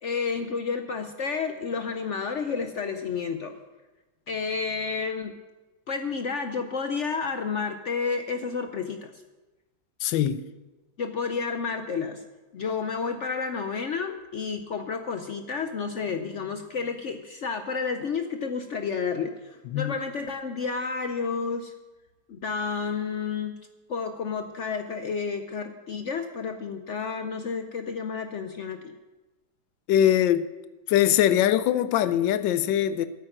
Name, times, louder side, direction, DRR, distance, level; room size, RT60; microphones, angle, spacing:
voice 1, 0.0-3.6 4.3-5.4 5.9-9.1 11.0-12.2 12.5-21.7 22.3-23.5 23.9-28.9, left 5 dB, 60° left, 0.8 m, -31 dB
voice 2, 10.0-10.4 19.7-19.9 29.9-30.5 30.9-33.1, left 11 dB, 85° left, 1.4 m, -22 dB
8.9 x 8.7 x 8.9 m
omnidirectional pair, 2.0 m